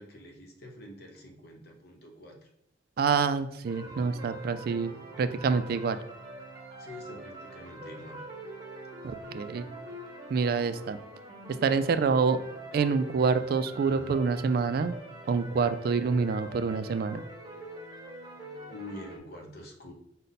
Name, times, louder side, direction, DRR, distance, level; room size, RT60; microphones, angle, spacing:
voice 1, 0.0-2.5 6.8-8.2 18.7-19.9, left 1 dB, 60° left, 1 dB, 0.8 m, -46 dB
voice 2, 3.0-4.9 5.2-6.0 9.0-9.7 10.3-11.0 11.6-12.4 12.7-15.0 15.3-17.2, right 5 dB, 55° right, 11 dB, 0.3 m, -27 dB
sound 1, 3.6-19.2, right 2 dB, 25° right, 1.1 m, -44 dB
5.2 x 2.1 x 4.0 m, 0.79 s
head